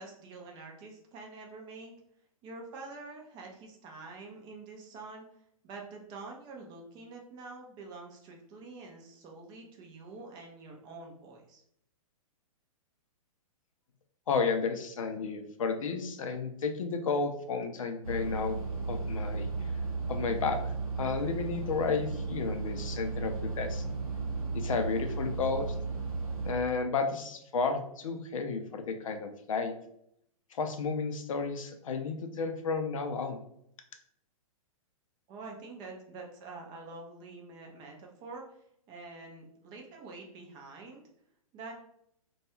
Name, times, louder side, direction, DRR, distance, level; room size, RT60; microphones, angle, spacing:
voice 1, 0.0-1.9 2.4-5.2 5.6-11.6 35.3-38.4 38.9-41.0 41.5-41.7, right 3 dB, 25° right, 1 dB, 0.5 m, -46 dB
voice 2, 14.3-18.6 18.9-19.7 20.1-20.6 21.0-23.8 24.5-25.7 26.4-29.7 30.5-33.4, left 4 dB, 65° left, 6 dB, 0.4 m, -32 dB
sound 1, 18.0-26.5, right 4 dB, 80° right, 0.6 m, -35 dB
2.3 x 2.2 x 2.9 m, 0.72 s
figure-of-eight pair, 115°, 18 cm